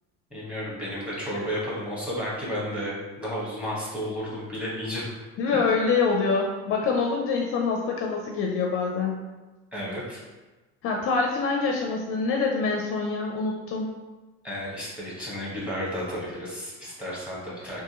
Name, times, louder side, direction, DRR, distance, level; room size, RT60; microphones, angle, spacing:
voice 1, 0.3-5.1 9.7-10.2 14.4-17.8, equal, 5° right, -6 dB, 1.3 m, -32 dB
voice 2, 5.4-9.2 10.8-13.9, left 4 dB, 45° left, 0 dB, 0.5 m, -25 dB
3.5 x 2.7 x 2.9 m, 1.2 s
cardioid pair, 130°, 30 cm